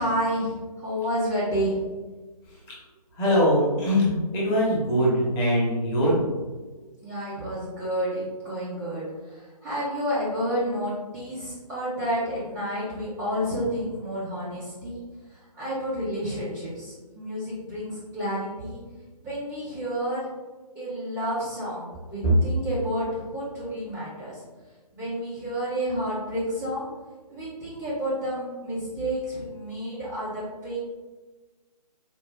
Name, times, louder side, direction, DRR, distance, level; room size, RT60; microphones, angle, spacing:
voice 1, 0.0-1.9 7.0-18.8 19.2-20.3 20.7-24.5 24.9-26.9 27.3-30.8, equal, 5° right, -13 dB, 0.4 m, -30 dB
voice 2, 3.2-6.1, equal, 15° left, -6 dB, 0.9 m, -22 dB
4.3 x 2.4 x 3.2 m, 1.3 s
figure-of-eight pair, 140°, 21 cm